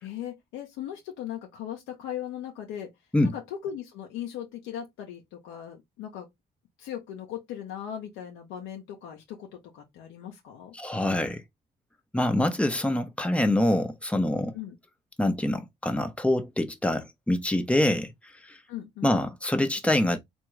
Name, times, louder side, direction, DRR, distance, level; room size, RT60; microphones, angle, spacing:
voice 1, 0.0-2.9 3.2-6.3 6.8-9.5 9.7-10.7 14.5-14.8 18.7-19.2, left 10 dB, 90° left, 0.7 m, -38 dB
voice 2, 10.7-11.4 12.1-14.5 15.2-18.1 18.5-18.6 19.0-20.2, left 1 dB, 5° left, 0.8 m, -25 dB
3.5 x 2.3 x 3.2 m
supercardioid pair, 60°, 20 cm